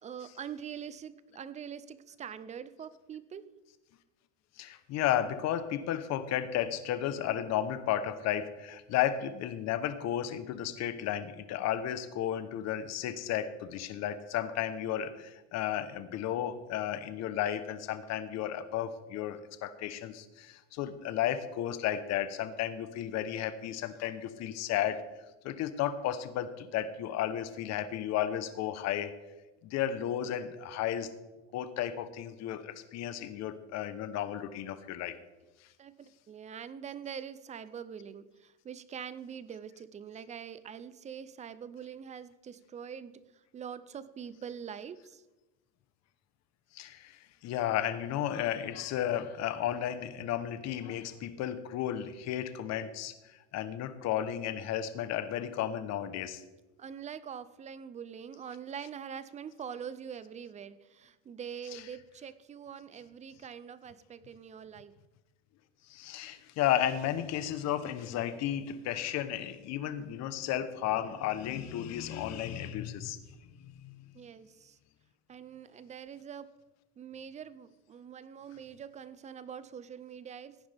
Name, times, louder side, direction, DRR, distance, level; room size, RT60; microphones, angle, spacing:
voice 1, 0.0-3.5 35.8-43.2 43.5-45.2 56.8-64.9 74.1-74.8 75.3-76.5 77.0-80.6, right 8 dB, 20° right, 15 dB, 0.5 m, -44 dB
voice 2, 4.6-25.0 25.4-29.1 29.6-31.1 31.5-35.2 46.7-56.4 61.7-61.8 65.9-73.2 73.6-74.0, left 11 dB, 50° left, 12 dB, 1.0 m, -33 dB
16.5 x 9.6 x 3.5 m, 1.1 s
cardioid pair, 140°, 34 cm